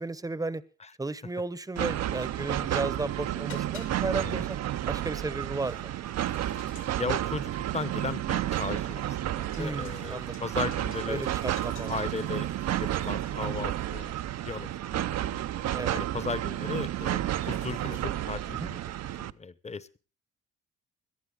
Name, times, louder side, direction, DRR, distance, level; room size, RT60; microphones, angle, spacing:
voice 1, 0.0-0.6 1.0-4.6 4.9-5.9 9.6-10.4 11.1-12.0 15.7-16.0 18.6-18.7, right 2 dB, 10° right, 17 dB, 0.8 m, -34 dB
sound 1, 1.8-19.3, right 12 dB, 60° right, 0.6 m, -31 dB
sound 2, 2.5-18.1, left 7 dB, 80° left, 3.2 m, -55 dB
voice 2, 7.0-11.3 11.9-14.1 14.4-14.7 15.0-15.4 15.9-18.8 19.2-20.0, left 4 dB, 20° left, 16 dB, 0.9 m, -36 dB
18.0 x 11.5 x 3.8 m, 0.33 s
cardioid pair, 90°, 30 cm